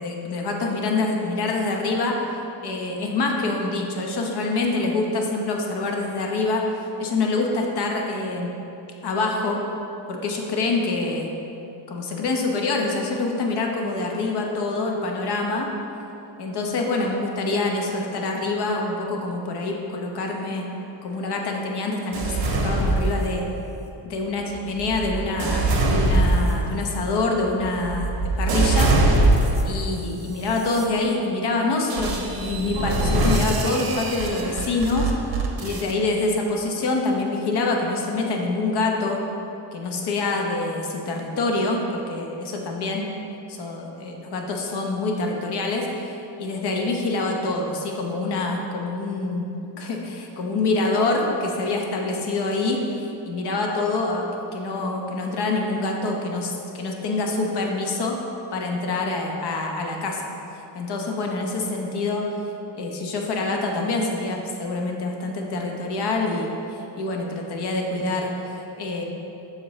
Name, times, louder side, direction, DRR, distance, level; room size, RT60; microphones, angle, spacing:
voice 1, 0.0-2.2 2.6-6.7 7.0-8.5 9.0-9.6 10.1-11.4 11.9-15.7 16.4-20.7 21.0-23.5 24.0-28.9 29.6-35.1 35.6-39.2 39.7-43.1 43.5-49.5 49.8-54.3 54.5-58.2 58.5-60.2 60.7-62.3 62.8-69.0, left 3 dB, 65° left, 1 dB, 1.0 m, -26 dB
sound 1, 22.1-23.7 24.4-29.9 30.5-30.8 31.9-35.9, right 2 dB, 60° right, 1.0 m, -23 dB
7.4 x 6.8 x 3.2 m, 2.9 s
cardioid pair, 155°, 43 cm